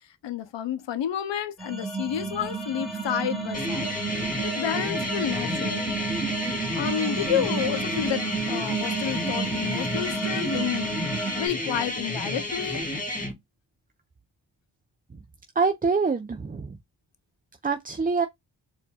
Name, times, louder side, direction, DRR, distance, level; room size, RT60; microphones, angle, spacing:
voice 1, 0.2-3.9 4.4-5.9 6.8-12.8, left 10 dB, 75° left, 0.7 m, -30 dB
sound 1, 1.6-11.5, right 4 dB, ahead, 1.5 m, -31 dB
sound 2, 3.5-13.3, left 1 dB, 20° left, 1.9 m, -31 dB
voice 2, 15.6-16.7 17.6-18.3, right 4 dB, 20° right, 0.4 m, -25 dB
4.4 x 2.6 x 2.3 m
cardioid pair, 45°, 44 cm